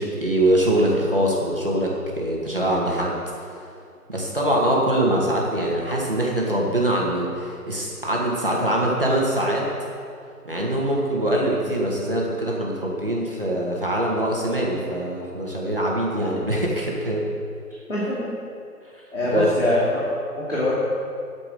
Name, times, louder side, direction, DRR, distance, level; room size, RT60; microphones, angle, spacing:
voice 1, 0.0-3.2 4.1-9.7 10.4-17.2 19.3-19.5, right 1 dB, 35° right, -3 dB, 2.1 m, -23 dB
voice 2, 17.9-18.3 19.1-20.1 20.5-20.7, left 1 dB, 50° left, -7 dB, 2.7 m, -23 dB
11.0 x 7.8 x 7.8 m, 2.3 s
figure-of-eight pair, 175°, 46 cm